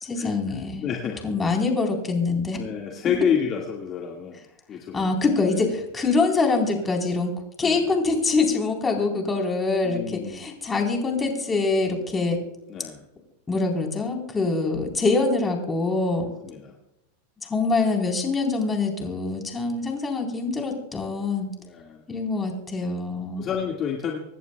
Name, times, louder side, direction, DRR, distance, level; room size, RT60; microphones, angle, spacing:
voice 1, 0.0-0.9 1.2-2.6 4.9-12.4 13.5-16.3 17.5-21.5 22.1-23.5, left 3 dB, 15° left, 1 dB, 4.0 m, -24 dB
voice 2, 0.8-1.2 2.5-4.4 4.7-5.1 7.6-7.8 9.8-10.4 12.7-13.0 16.4-16.7 21.6-22.0 23.4-24.2, left 7 dB, 35° left, 0 dB, 1.9 m, -29 dB
26.0 x 11.0 x 2.3 m, 0.91 s
hypercardioid pair, 110°, 0 cm